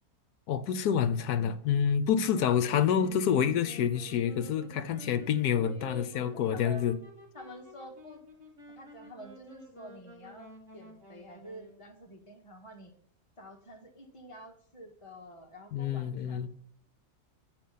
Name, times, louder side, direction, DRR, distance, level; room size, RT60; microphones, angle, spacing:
voice 1, 0.5-7.0 15.7-16.5, left 8 dB, 75° left, 1.2 m, -28 dB
Wind instrument woodwind instrument, 2.3-11.9, left 1 dB, 50° right, 2.7 m, -52 dB
voice 2, 5.7-6.8 7.3-8.2 8.7-12.9 13.4-16.5, right 1 dB, 20° left, 1.5 m, -48 dB
9.0 x 4.7 x 5.5 m
omnidirectional pair, 1.7 m